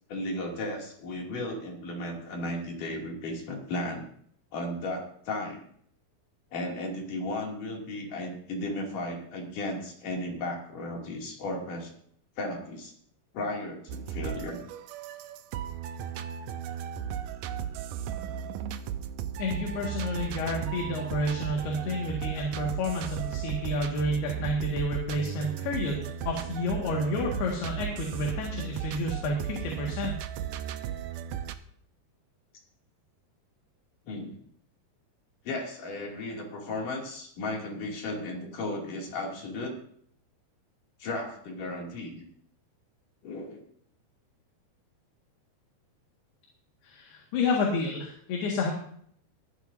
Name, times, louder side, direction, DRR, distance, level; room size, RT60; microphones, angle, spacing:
voice 1, 0.1-4.0 4.5-5.7 6.5-11.9 12.4-12.9 13.3-14.6 34.1-34.4 35.5-39.8 41.0-42.3 43.2-43.6, left 1 dB, 55° left, -1 dB, 4.1 m, -35 dB
sound 1, 13.9-31.5, right 9 dB, 80° right, 2.0 m, -35 dB
voice 2, 19.4-30.2 46.8-48.7, left 2 dB, 75° left, -1 dB, 3.9 m, -30 dB
21.0 x 11.5 x 2.7 m, 0.63 s
omnidirectional pair, 4.6 m